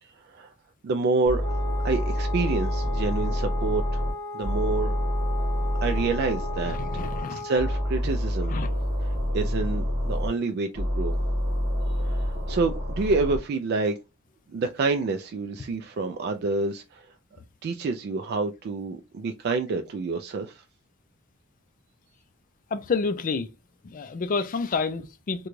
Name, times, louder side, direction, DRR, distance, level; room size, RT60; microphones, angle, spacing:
voice 1, 0.0-0.5 0.8-1.6 1.8-4.0 4.3-5.0 5.8-8.5 9.3-11.1 12.0-13.9 14.5-17.1 17.6-20.6, right 3 dB, 50° right, 0.3 m, -28 dB
sound 1, 1.3-4.1 4.4-7.2 7.6-10.3 10.8-13.4, equal, 25° right, 1.2 m, -27 dB
Wind instrument woodwind instrument, 1.4-8.0, left 2 dB, 10° left, 0.9 m, -37 dB
voice 2, 6.7-7.5 8.5-8.7 22.7-23.5 23.8-25.5, left 4 dB, 40° left, 0.4 m, -29 dB
3.7 x 2.2 x 3.0 m
head